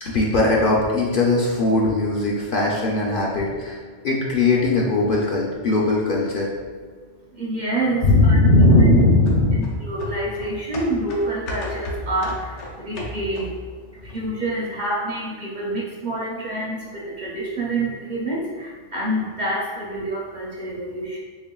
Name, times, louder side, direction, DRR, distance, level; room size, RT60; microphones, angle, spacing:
voice 1, 0.0-3.8 4.0-6.5 8.0-9.6, left 2 dB, 60° left, -3 dB, 0.6 m, -18 dB
voice 2, 7.3-8.4 8.9-9.0 9.5-13.5 14.0-21.2, right 2 dB, 50° right, -4 dB, 0.6 m, -27 dB
sound 1, 9.3-13.7 14.1-14.2, left 1 dB, 90° left, 1.0 m, -34 dB
4.2 x 3.2 x 2.3 m, 1.5 s
omnidirectional pair, 1.2 m